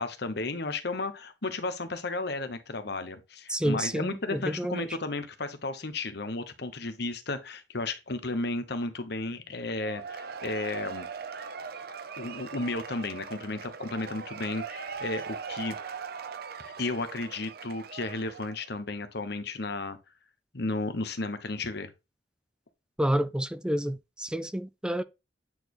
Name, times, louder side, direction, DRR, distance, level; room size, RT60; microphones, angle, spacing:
voice 1, 0.0-11.1 12.2-15.8 16.8-20.0 20.5-21.9, left 2 dB, 65° left, 1.1 m, -33 dB
voice 2, 3.5-4.9 23.0-25.0, equal, 5° right, 0.4 m, -29 dB
Cheering / Applause / Crowd, 9.8-18.7, right 5 dB, 60° right, 0.7 m, -40 dB
9.0 x 4.2 x 3.1 m
head